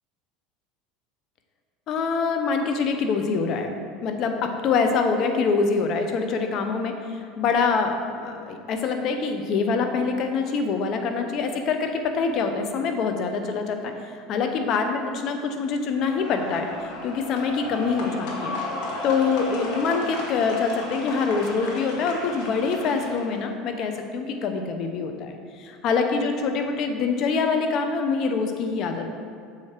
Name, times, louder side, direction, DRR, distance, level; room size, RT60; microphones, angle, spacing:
voice 1, 1.9-3.8 4.0-18.6 19.0-29.0, left 5 dB, 50° left, 5 dB, 0.8 m, -25 dB
sound 1, 16.0-23.4, left 2 dB, 70° left, 1.4 m, -34 dB
6.9 x 4.9 x 4.5 m, 2.3 s
supercardioid pair, 105°, 0 cm